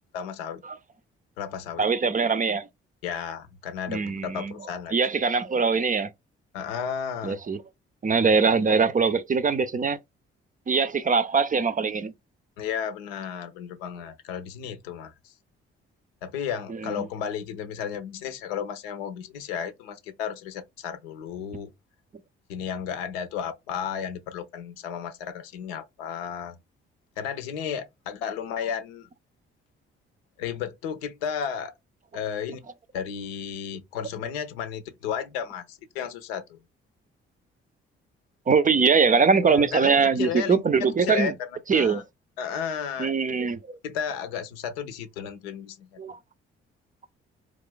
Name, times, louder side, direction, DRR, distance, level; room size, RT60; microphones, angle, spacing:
voice 1, 0.1-0.6 1.4-1.9 3.0-4.9 6.5-7.4 12.6-15.3 16.2-21.7 22.5-26.6 27.2-29.1 30.4-31.7 32.1-32.6 32.9-36.6 39.5-41.3 41.7-42.0 42.4-43.1 43.8-46.0, left 8 dB, 80° left, 0.7 m, -33 dB
voice 2, 1.8-2.7 3.9-4.5 4.9-6.1 7.2-7.6 8.0-10.0 10.7-12.1 16.7-17.1 38.5-41.3 41.7-42.0 43.0-43.6 46.0-46.2, right 5 dB, 30° right, 0.5 m, -22 dB
3.1 x 2.4 x 3.7 m
hypercardioid pair, 40°, 29 cm